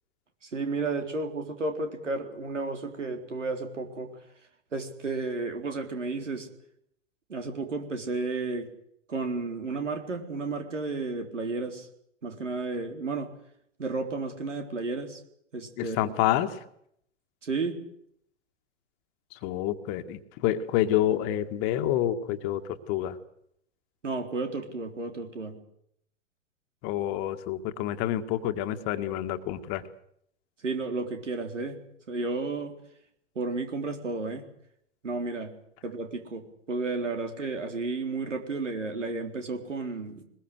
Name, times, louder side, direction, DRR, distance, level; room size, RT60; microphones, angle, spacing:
voice 1, 0.4-4.2 4.7-6.5 7.3-8.7 9.1-11.9 12.2-13.3 13.8-15.2 15.5-16.0 17.4-17.8 24.0-25.6 30.6-31.8 32.1-32.8 33.4-34.5 35.0-35.5 35.8-40.2, right 3 dB, 75° right, 5 dB, 4.1 m, -32 dB
voice 2, 15.8-16.6 19.3-23.2 26.8-29.8, left 12 dB, 35° left, 8 dB, 1.9 m, -28 dB
22.0 x 21.0 x 8.1 m, 0.72 s
figure-of-eight pair, 105°, 37 cm